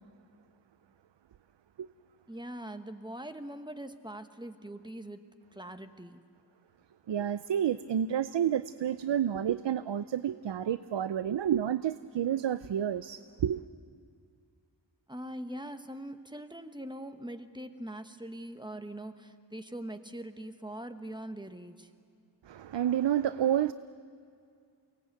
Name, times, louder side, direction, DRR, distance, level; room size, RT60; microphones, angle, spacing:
voice 1, 2.3-5.2 5.5-6.2 15.1-21.9, right 1 dB, 10° right, 8 dB, 1.1 m, -42 dB
voice 2, 7.1-13.6 22.4-23.7, right 10 dB, 75° right, 14 dB, 0.5 m, -30 dB
23.5 x 18.5 x 8.1 m, 2.3 s
wide cardioid pair, 55°, 43 cm